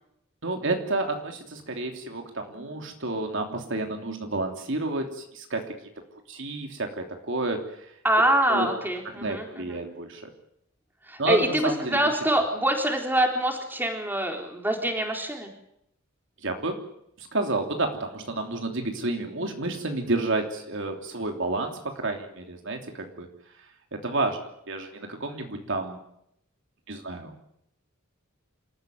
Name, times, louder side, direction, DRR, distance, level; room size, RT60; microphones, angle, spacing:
voice 1, 0.4-5.7 6.3-7.9 8.5-8.7 9.0-10.3 11.2-12.0 16.4-16.8 17.2-23.3 23.9-24.4 24.7-26.0 26.9-27.3, right 2 dB, 65° right, 4 dB, 3.1 m, -30 dB
voice 2, 8.0-9.8 11.1-15.5, right 1 dB, 10° right, 3 dB, 4.0 m, -25 dB
27.5 x 14.5 x 9.3 m, 0.76 s
head